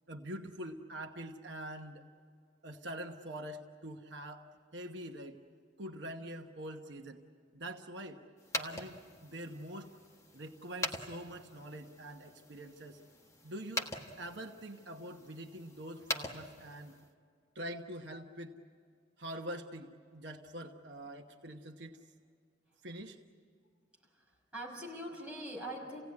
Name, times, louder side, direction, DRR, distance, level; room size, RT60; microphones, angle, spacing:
voice 1, 0.1-2.0 2.6-5.4 5.8-7.2 7.5-8.2 8.5-9.9 10.3-13.0 13.4-13.9 14.2-17.0 17.5-18.5 19.2-22.0 22.8-23.2, right 1 dB, 65° right, 3 dB, 1.1 m, -45 dB
sound 1, 8.4-17.1, left 2 dB, 15° left, 1.4 m, -43 dB
voice 2, 24.1-26.0, right 1 dB, 5° right, -4 dB, 6.0 m, -43 dB
29.0 x 17.5 x 9.7 m, 2.2 s
head